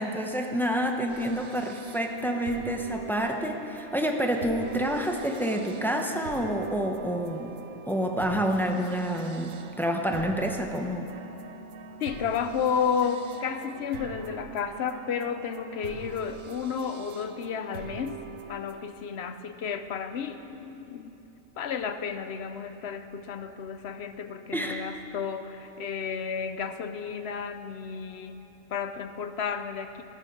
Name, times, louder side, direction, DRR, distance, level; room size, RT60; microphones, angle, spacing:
voice 1, 0.0-7.6 7.9-11.1 24.5-24.9, equal, ahead, 3 dB, 0.7 m, -28 dB
sound 1, 1.1-18.8, right 6 dB, 75° right, 1.2 m, -44 dB
voice 2, 12.0-18.2 18.5-21.2 21.6-28.4 28.7-30.0, left 6 dB, 60° left, 10 dB, 0.9 m, -32 dB
16.0 x 10.5 x 6.5 m, 2.9 s
omnidirectional pair, 1.4 m